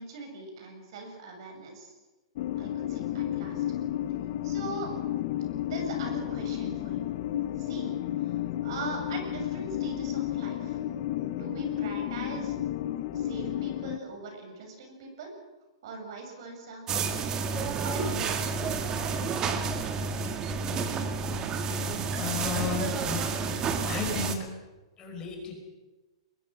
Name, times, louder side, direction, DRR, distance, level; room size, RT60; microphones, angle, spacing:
voice 1, 0.0-1.9 2.6-3.6 4.4-5.0 5.6-7.1 7.6-8.0 8.2-10.8 11.3-12.6 13.1-15.3 15.8-16.8 17.8-18.7, right 3 dB, 55° right, 4 dB, 7.1 m, -40 dB
sound 1, 2.4-14.0, left 12 dB, 45° left, 1.0 m, -32 dB
sound 2, 16.9-24.4, right 5 dB, 20° right, 1.8 m, -30 dB
voice 2, 22.1-23.2 23.8-24.4 25.0-25.5, left 6 dB, 20° left, 2 dB, 5.1 m, -33 dB
22.5 x 21.5 x 6.3 m, 1.2 s
hypercardioid pair, 155°, 3 cm